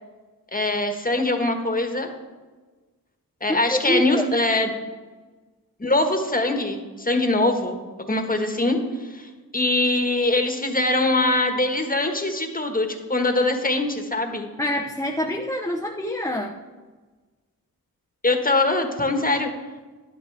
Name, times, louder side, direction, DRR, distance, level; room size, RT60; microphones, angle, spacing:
voice 1, 0.5-2.1 3.4-4.7 5.8-7.8 8.1-14.5 18.2-19.5, left 2 dB, 25° left, 5 dB, 1.5 m, -22 dB
voice 2, 3.5-4.3 14.6-16.6, left 1 dB, 10° left, 1 dB, 0.8 m, -26 dB
12.5 x 11.5 x 3.4 m, 1.3 s
wide cardioid pair, 70°, 36 cm